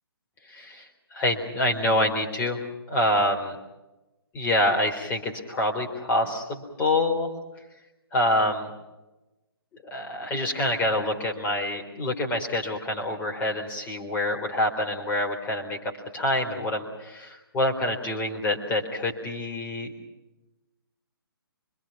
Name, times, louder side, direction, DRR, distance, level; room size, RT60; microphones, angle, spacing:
voice 1, 0.5-2.6 2.9-3.6 4.3-7.3 8.1-8.7 9.8-19.9, left 1 dB, 15° left, 1 dB, 3.9 m, -26 dB
27.0 x 24.0 x 6.0 m, 1.0 s
figure-of-eight pair, 135°, 13 cm